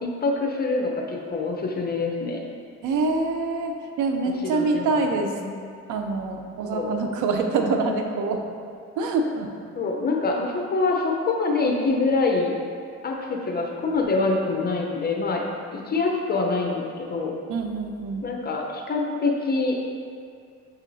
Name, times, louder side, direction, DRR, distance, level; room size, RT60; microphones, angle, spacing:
voice 1, 0.0-2.4 4.5-5.0 5.4-5.6 6.7-6.9 9.7-12.5 13.0-15.4 15.7-17.3 18.2-19.7, left 3 dB, 30° left, 0 dB, 0.7 m, -25 dB
voice 2, 2.8-5.3 5.9-8.4 9.0-9.5 17.5-18.2, right 3 dB, 80° right, 4 dB, 0.5 m, -25 dB
6.2 x 2.7 x 2.7 m, 2.3 s
cardioid pair, 90°, 30 cm